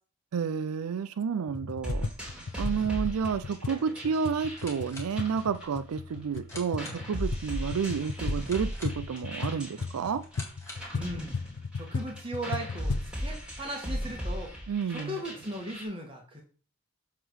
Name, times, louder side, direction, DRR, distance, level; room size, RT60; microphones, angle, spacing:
voice 1, 0.3-2.1 2.6-10.2 14.7-15.2, right 6 dB, 90° right, 0.4 m, -30 dB
sound 1, 1.5-13.1, left 4 dB, 85° left, 0.5 m, -37 dB
sound 2, 1.8-6.2 6.5-15.8, equal, 5° right, 2.9 m, -37 dB
sound 3, 4.4-11.1, left 2 dB, 15° left, 1.7 m, -49 dB
voice 2, 10.9-11.3 11.7-14.5 14.9-16.4, right 1 dB, 25° right, 1.7 m, -37 dB
7.8 x 3.6 x 6.4 m
head